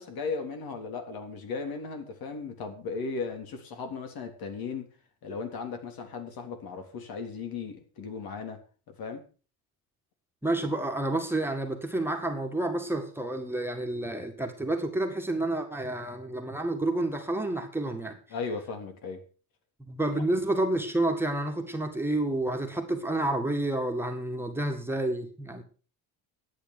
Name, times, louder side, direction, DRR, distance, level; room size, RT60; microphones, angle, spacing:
voice 1, 0.0-4.9 5.2-8.6 8.9-9.2 18.3-19.2, left 4 dB, 65° left, 6 dB, 3.6 m, -36 dB
voice 2, 10.4-18.2 19.8-25.6, right 2 dB, 5° right, 3 dB, 1.9 m, -29 dB
11.5 x 9.2 x 6.7 m, 0.38 s
cardioid pair, 150°, 38 cm